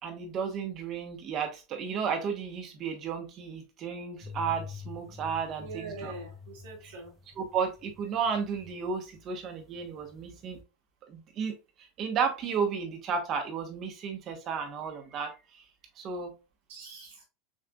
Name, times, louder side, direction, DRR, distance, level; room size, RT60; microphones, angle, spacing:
voice 1, 0.0-6.1 6.8-7.0 7.4-10.6 11.1-11.6 12.0-15.6 16.0-16.3, right 6 dB, 35° right, 1.1 m, -33 dB
sound 1, 4.2-9.2 9.5-10.6, left 6 dB, 15° left, 0.9 m, -46 dB
voice 2, 5.6-7.2 16.7-17.2, right 3 dB, 85° right, 2.5 m, -43 dB
6.3 x 2.6 x 2.3 m
supercardioid pair, 150°, 0 cm